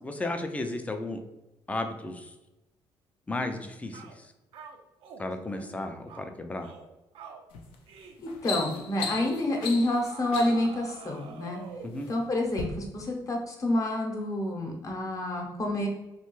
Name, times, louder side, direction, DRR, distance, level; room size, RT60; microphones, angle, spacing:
voice 1, 0.0-1.2 1.7-2.3 3.3-4.3 5.2-6.7 11.8-12.1, left 2 dB, 15° left, 6 dB, 0.4 m, -34 dB
sound 1, 3.3-3.5 3.9-4.2 4.5-5.2 5.6-5.8 6.1-6.3 6.6-6.9 7.1-7.4 7.9-8.2 8.5-8.7 9.1-9.4 10.0-12.0, right 5 dB, 80° right, 0.4 m, -46 dB
sound 2, 7.5-7.7 8.1-10.7 11.6-12.1 12.5-12.6, left 6 dB, 85° left, 0.5 m, -36 dB
voice 2, 8.2-11.6 12.1-15.9, left 1 dB, 35° left, 1 dB, 0.7 m, -28 dB
2.9 x 2.2 x 3.0 m, 0.99 s
cardioid pair, 95°, 9 cm